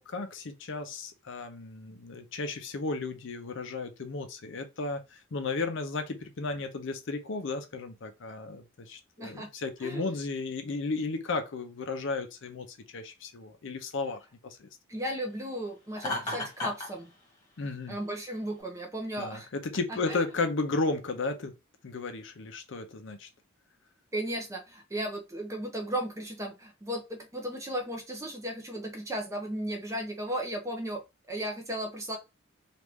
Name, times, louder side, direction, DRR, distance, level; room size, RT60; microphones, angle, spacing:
voice 1, 0.0-14.7 17.6-18.0 19.2-21.5 21.8-23.3, left 3 dB, 60° left, 0.5 m, -34 dB
voice 2, 9.2-9.5 9.8-10.1 14.9-17.1 17.9-19.5 19.9-20.2 24.1-31.0 31.3-32.2, right 1 dB, 15° right, 0.7 m, -35 dB
Laughter, 16.0-16.9, left 2 dB, 20° left, 1.4 m, -33 dB
3.1 x 2.5 x 3.4 m
head